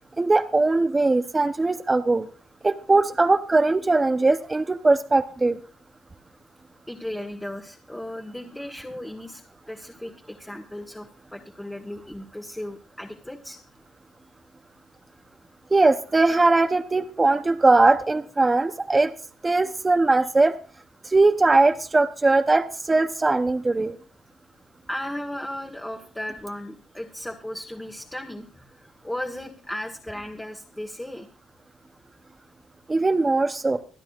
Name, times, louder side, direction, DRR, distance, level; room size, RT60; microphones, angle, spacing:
voice 1, 0.2-2.3 2.6-5.6 15.7-19.1 19.4-20.5 21.0-24.0 32.9-33.8, right 3 dB, 20° right, 8 dB, 0.8 m, -20 dB
voice 2, 6.9-9.4 9.7-13.6 24.9-31.3, left 1 dB, 10° left, 2 dB, 1.5 m, -36 dB
25.0 x 9.8 x 2.5 m, 0.40 s
cardioid pair, 90°, 0 cm